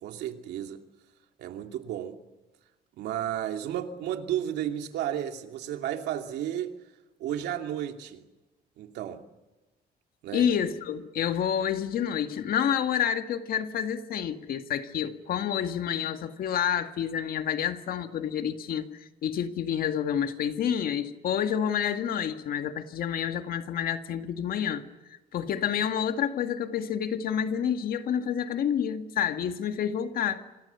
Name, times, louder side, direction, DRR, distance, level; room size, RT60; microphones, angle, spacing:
voice 1, 0.0-0.8 1.4-2.2 3.0-6.8 7.2-8.2 8.8-9.2 10.2-10.4, right 11 dB, 85° right, 2.7 m, -33 dB
voice 2, 10.3-24.8 25.3-30.4, left 8 dB, 60° left, 2.0 m, -29 dB
27.5 x 25.5 x 7.1 m
cardioid pair, 145°, 17 cm